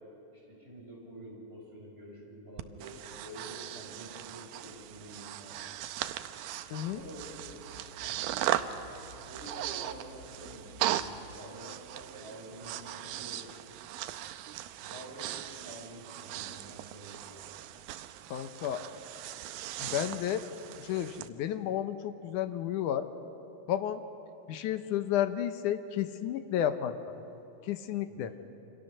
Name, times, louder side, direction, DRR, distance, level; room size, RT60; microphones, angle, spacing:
voice 1, 0.3-5.6 6.8-7.7 8.0-8.7 9.3-13.5 14.8-17.5 28.1-28.4, right 1 dB, 15° right, -3 dB, 7.1 m, -48 dB
Breathing, 2.6-21.3, right 12 dB, 80° right, 2.5 m, -38 dB
voice 2, 6.7-7.0 18.3-18.8 19.8-20.4 20.8-23.1 23.7-24.0 24.5-27.2 27.7-28.3, left 10 dB, 70° left, 9 dB, 2.1 m, -32 dB
sound 1, 6.9-11.3, equal, 35° left, 6.1 m, -54 dB
28.5 x 25.5 x 6.7 m, 2.9 s
omnidirectional pair, 4.3 m